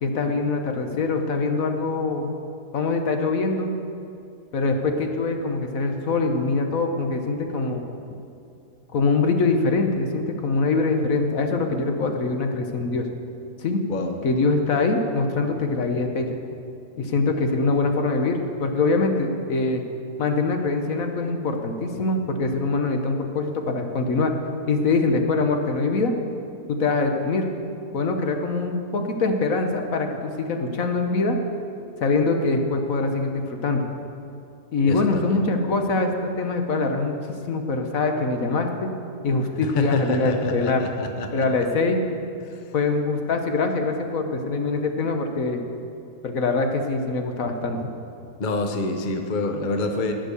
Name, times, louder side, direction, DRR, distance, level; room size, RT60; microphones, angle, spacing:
voice 1, 0.0-2.3 2.7-3.7 4.5-7.8 8.9-13.1 13.6-13.8 14.2-16.4 17.0-19.8 20.2-24.3 24.7-26.1 26.7-27.5 27.9-31.4 32.0-33.8 34.7-37.2 37.5-38.9 39.2-40.8 41.3-42.0 42.7-45.6 46.2-47.9, left 3 dB, 60° left, 4 dB, 1.3 m, -23 dB
voice 2, 34.8-35.4 39.6-41.5 42.5-42.6 48.4-50.1, left 2 dB, 35° left, 5 dB, 0.9 m, -26 dB
19.5 x 6.4 x 6.9 m, 2.6 s
omnidirectional pair, 1.8 m